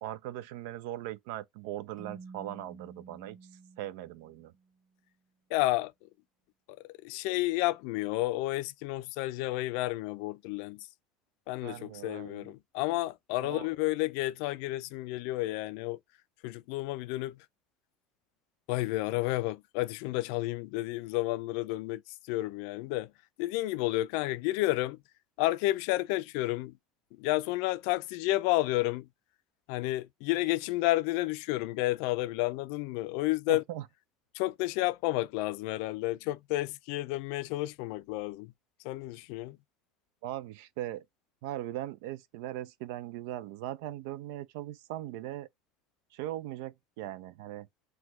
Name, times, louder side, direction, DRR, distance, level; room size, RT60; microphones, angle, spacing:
voice 1, 0.0-3.4 3.8-4.5 11.6-12.5 13.4-13.7 33.5-33.8 40.2-41.0 41.4-45.5 46.1-47.7, right 14 dB, 75° right, 0.4 m, -39 dB
Keyboard (musical), 2.0-4.7, right 4 dB, 15° right, 1.3 m, -50 dB
voice 2, 5.5-5.9 6.8-10.9 11.5-16.0 16.4-17.4 18.7-22.0 22.3-23.1 23.4-25.0 25.4-26.7 27.2-29.1 29.7-33.6 34.3-38.5 38.8-39.6, left 18 dB, 70° left, 0.3 m, -31 dB
5.9 x 2.2 x 2.9 m
supercardioid pair, 105°, 0 cm